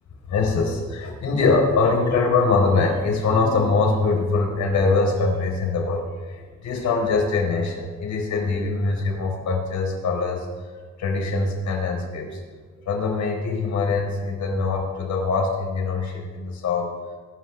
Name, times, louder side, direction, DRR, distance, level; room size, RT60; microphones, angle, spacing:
voice 1, 0.3-10.5 11.0-12.4 12.9-16.9, left 4 dB, 70° left, 1 dB, 4.4 m, -23 dB
23.0 x 12.0 x 3.5 m, 1.4 s
cardioid pair, 90°, 30 cm